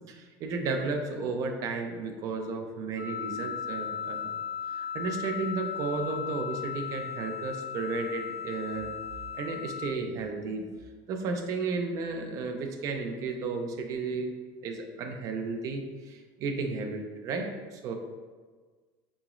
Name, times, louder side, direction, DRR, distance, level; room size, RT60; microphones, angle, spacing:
voice 1, 0.1-4.3 4.7-8.9 9.3-10.7 11.1-14.3 14.6-17.9, right 4 dB, 30° right, 4 dB, 0.4 m, -33 dB
Wind instrument woodwind instrument, 3.0-9.9, left 8 dB, 60° left, 1.2 m, -36 dB
3.9 x 2.9 x 2.4 m, 1.4 s
cardioid pair, 180°, 10 cm